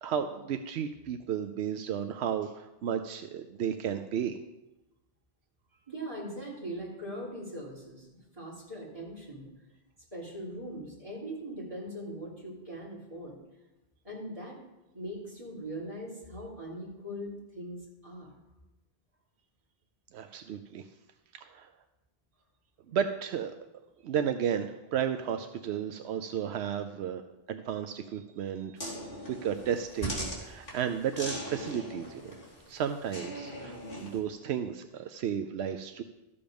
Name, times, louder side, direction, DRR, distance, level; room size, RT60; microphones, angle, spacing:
voice 1, 0.0-4.4 20.1-20.9 21.3-21.7 22.9-23.5 24.0-27.2 27.5-28.8 29.4-32.3 32.7-36.0, right 8 dB, 85° right, 7 dB, 0.9 m, -33 dB
voice 2, 5.9-8.1 8.3-9.5 10.1-13.4 14.0-14.6 14.9-18.3, right 1 dB, 35° right, -6 dB, 3.4 m, -40 dB
sound 1, 28.8-34.2, equal, 55° left, 3.0 m, -40 dB
13.0 x 7.0 x 5.2 m, 0.99 s
omnidirectional pair, 1.1 m